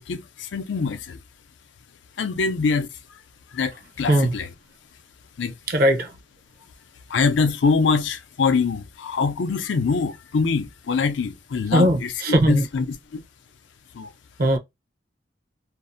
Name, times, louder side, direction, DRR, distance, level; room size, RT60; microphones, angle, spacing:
voice 1, 0.1-1.2 2.2-2.9 3.5-4.5 5.4-5.6 7.1-12.1 12.5-12.9 13.1-13.2 13.9-14.1, left 5 dB, 85° left, 0.4 m, -24 dB
voice 2, 5.7-6.2 11.7-12.7 14.4-14.6, right 1 dB, 55° right, 0.6 m, -19 dB
2.6 x 2.0 x 2.5 m
head